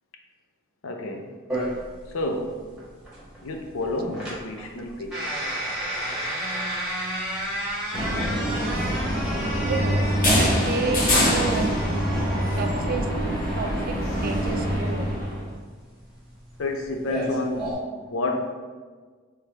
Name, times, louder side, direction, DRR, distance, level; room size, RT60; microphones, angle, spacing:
voice 1, 0.8-1.3 2.1-2.5 3.4-5.3 10.4-10.5 11.6-11.7 16.6-18.5, left 2 dB, 85° left, 3 dB, 0.5 m, -30 dB
sound 1, 1.5-17.7, right 1 dB, 5° right, 1.2 m, -33 dB
sound 2, 7.9-15.5, equal, 45° left, 1.0 m, -24 dB
voice 2, 9.6-11.8 12.6-13.1 13.6-13.9 14.2-15.1, right 3 dB, 45° right, 6 dB, 0.3 m, -30 dB
3.5 x 3.2 x 2.9 m, 1.5 s
head